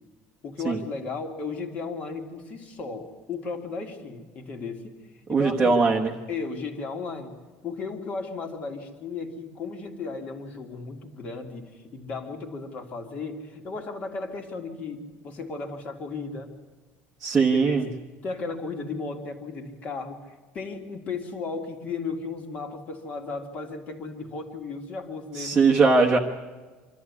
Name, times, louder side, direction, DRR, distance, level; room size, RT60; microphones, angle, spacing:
voice 1, 0.4-5.8 6.3-7.3 7.6-16.5 17.4-17.9 18.2-20.2 20.5-25.6, left 4 dB, 30° left, 5 dB, 2.2 m, -35 dB
voice 2, 5.3-6.1 17.2-17.9 25.4-26.2, right 4 dB, 15° right, -2 dB, 1.1 m, -20 dB
25.0 x 13.5 x 9.6 m, 1.3 s
cardioid pair, 180°, 5 cm